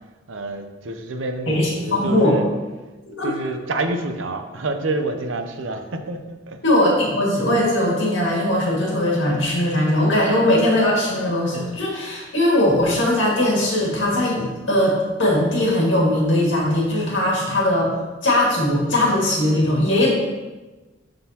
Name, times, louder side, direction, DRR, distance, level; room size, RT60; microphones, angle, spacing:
voice 1, 0.3-2.4 3.2-6.6, right 2 dB, 90° right, 6 dB, 0.7 m, -28 dB
voice 2, 1.5-2.3 3.1-3.3 6.6-17.9 18.2-20.1, left 1 dB, 75° left, -3 dB, 2.1 m, -20 dB
11.5 x 3.8 x 2.9 m, 1.2 s
head